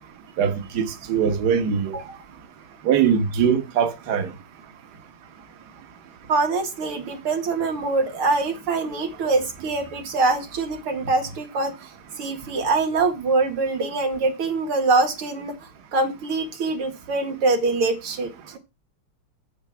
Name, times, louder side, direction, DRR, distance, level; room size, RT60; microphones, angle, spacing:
voice 1, 0.4-2.0 2.8-4.3, right 7 dB, 55° right, 1.7 m, -21 dB
voice 2, 6.3-11.7 12.2-18.3, right 3 dB, 85° right, 2.7 m, -24 dB
8.1 x 6.6 x 6.0 m
omnidirectional pair, 2.3 m